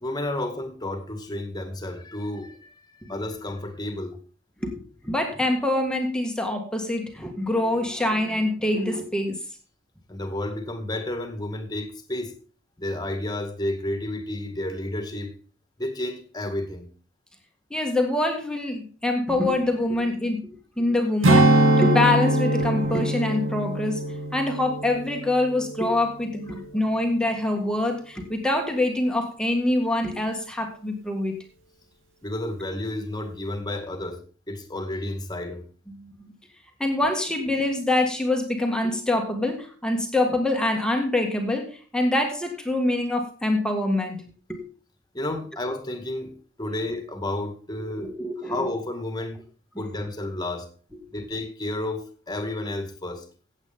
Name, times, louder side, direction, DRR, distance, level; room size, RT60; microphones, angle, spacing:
voice 1, 0.0-2.7 3.0-4.2 10.1-12.4 12.8-15.3 15.8-16.9 26.5-26.6 32.2-35.6 45.1-46.3 46.6-49.4 49.8-50.7 51.1-53.3, left 1 dB, 20° left, 2.0 m, -31 dB
voice 2, 5.0-9.4 17.7-24.1 24.3-31.3 35.9-36.1 36.8-44.6 48.0-48.6, left 2 dB, 5° left, 1.8 m, -25 dB
Strum, 21.2-25.9 26.3-26.5, right 1 dB, 70° right, 2.7 m, -22 dB
16.0 x 8.3 x 3.6 m
head